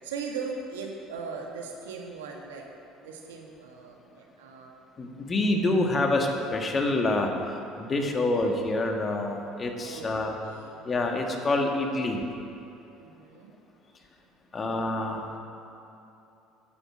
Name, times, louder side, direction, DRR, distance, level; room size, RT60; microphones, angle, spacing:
voice 1, 0.0-2.7 3.0-4.7 9.8-10.9 13.0-13.5, right 5 dB, 85° right, 1 dB, 1.5 m, -39 dB
voice 2, 5.0-7.3 7.8-10.4 10.8-12.2 14.5-15.4, left 2 dB, 35° left, 2 dB, 1.8 m, -27 dB
9.9 x 8.8 x 7.2 m, 2.8 s
hypercardioid pair, 70°, 0 cm